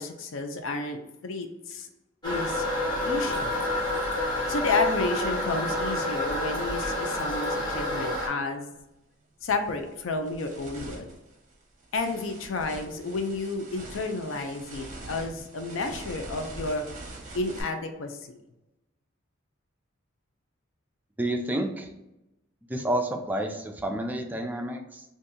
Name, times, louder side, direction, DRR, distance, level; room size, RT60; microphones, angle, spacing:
voice 1, 0.0-1.9 2.2-2.6 3.0-3.6 4.5-8.7 9.4-11.1 11.9-16.8 17.3-18.2, left 3 dB, 70° left, 6 dB, 0.4 m, -31 dB
Toilet flush, 2.2-8.3, left 1 dB, 20° left, 1.0 m, -28 dB
sound 1, 8.8-8.9 9.4-17.6, right 2 dB, 40° right, 0.7 m, -44 dB
voice 2, 21.2-21.9 22.6-25.0, right 1 dB, 10° right, 3 dB, 0.4 m, -30 dB
2.7 x 2.5 x 3.6 m, 0.93 s
head